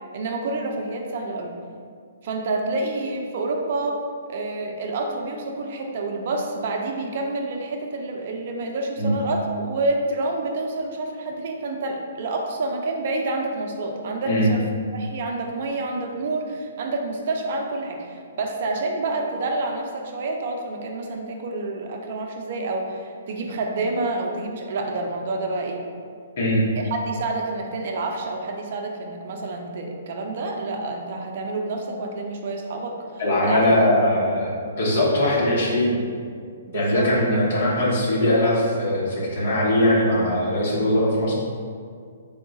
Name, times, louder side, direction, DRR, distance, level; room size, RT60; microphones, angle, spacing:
voice 1, 0.1-1.5 2.2-4.0 4.3-14.6 14.9-25.8 26.9-33.0 33.4-33.9 36.7-37.1, right 2 dB, 55° right, 2 dB, 0.5 m, -28 dB
voice 2, 33.2-35.9 36.7-41.3, left 1 dB, 60° left, -4 dB, 1.1 m, -21 dB
3.6 x 2.3 x 3.9 m, 2.2 s
hypercardioid pair, 145°, 0 cm